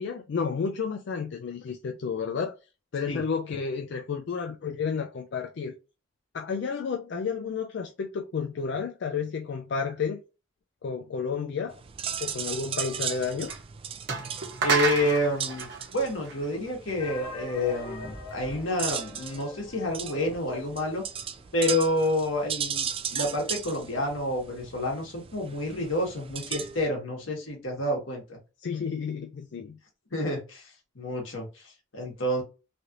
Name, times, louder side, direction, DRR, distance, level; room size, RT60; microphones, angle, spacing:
voice 1, 0.0-2.5 2.9-5.7 6.3-10.2 10.8-11.7 12.2-13.5 28.6-29.8, left 5 dB, 60° left, 0.4 m, -31 dB
sound 1, 11.7-26.9, right 8 dB, 30° right, 0.3 m, -37 dB
sound 2, 13.5-13.6 14.1-16.9, right 4 dB, 60° right, 1.0 m, -29 dB
voice 2, 14.6-15.7 15.9-21.0 21.5-28.4 30.1-30.7 30.9-32.4, left 1 dB, 80° left, 1.4 m, -29 dB
sound 3, 17.0-20.7 21.0-21.1 21.3-21.4 22.0-22.1, left 2 dB, 25° left, 0.9 m, -42 dB
3.2 x 2.5 x 2.8 m
head